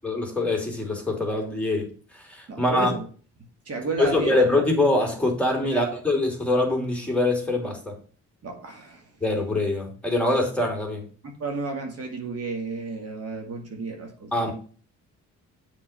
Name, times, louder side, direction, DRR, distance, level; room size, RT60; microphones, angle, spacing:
voice 1, 0.0-1.9 2.1-2.9 4.0-7.9 9.2-11.0 14.3-14.5, left 2 dB, 5° left, 0 dB, 3.0 m, -24 dB
voice 2, 2.5-3.1 3.7-4.4 5.6-5.8 8.4-9.1 11.2-14.5, right 3 dB, 55° right, 3 dB, 2.2 m, -32 dB
7.5 x 4.5 x 6.6 m, 0.40 s
cardioid pair, 90°, 30 cm